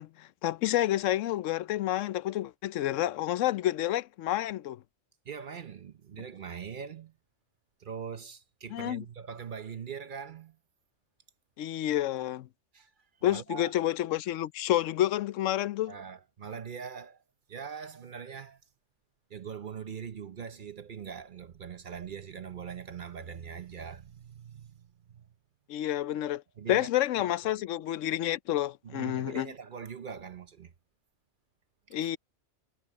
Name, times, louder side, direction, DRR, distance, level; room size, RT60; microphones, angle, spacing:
voice 1, 0.0-4.8 8.7-9.0 11.6-12.5 13.2-15.9 25.7-26.4 26.7-29.5 31.9-32.2, left 13 dB, 85° left, 0.9 m, -29 dB
voice 2, 5.2-7.1 7.8-10.6 12.7-12.9 13.2-13.7 15.8-17.2 17.5-18.6 19.3-25.3 26.6-26.9 27.4-27.6 28.8-30.7 31.9-32.1, right 7 dB, 50° right, 0.8 m, -42 dB
omnidirectional pair, 1.3 m